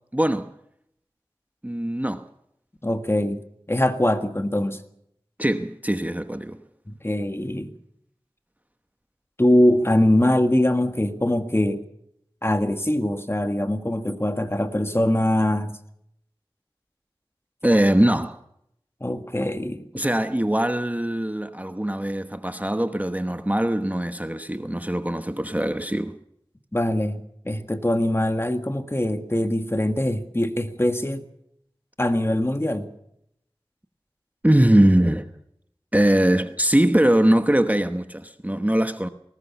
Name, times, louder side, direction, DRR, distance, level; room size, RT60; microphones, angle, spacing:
voice 1, 0.1-0.5 1.6-2.2 5.4-6.6 17.6-18.4 19.9-26.2 34.4-35.2 35.9-39.1, right 1 dB, 15° right, 1.0 m, -21 dB
voice 2, 2.8-3.4 3.7-4.8 6.9-7.7 9.4-11.8 12.4-15.7 19.0-19.8 26.7-31.2 32.0-32.9, left 1 dB, 25° left, 1.7 m, -22 dB
20.0 x 18.5 x 7.1 m
wide cardioid pair, 50°, 9 cm